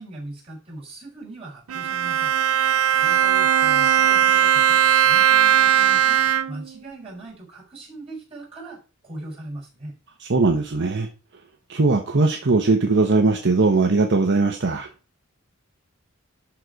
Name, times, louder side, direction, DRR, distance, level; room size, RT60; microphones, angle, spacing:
voice 1, 0.0-2.3 3.0-6.2 6.5-10.0, right 2 dB, 30° right, -6 dB, 5.2 m, -40 dB
Bowed string instrument, 1.7-6.7, right 9 dB, 80° right, 0.5 m, -18 dB
voice 2, 10.2-11.1 11.7-14.9, right 3 dB, 55° right, 4 dB, 0.8 m, -20 dB
11.5 x 4.0 x 4.6 m, 0.34 s
head